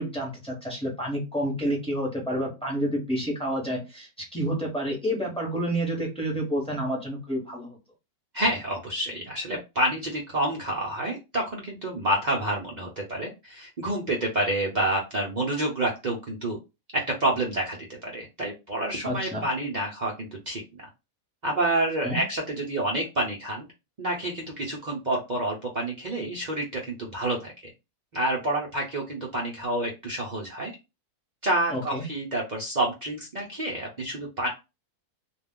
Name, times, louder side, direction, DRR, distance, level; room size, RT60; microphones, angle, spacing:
voice 1, 0.0-7.8 19.0-19.5 22.0-22.2 31.7-32.1, right 1 dB, 5° left, -1 dB, 0.8 m, -29 dB
voice 2, 8.3-16.6 16.9-20.9 21.4-23.7 24.0-27.7 28.1-30.7 31.4-34.5, right 1 dB, 60° right, -2 dB, 0.4 m, -28 dB
2.3 x 2.3 x 3.5 m, 0.26 s
omnidirectional pair, 1.6 m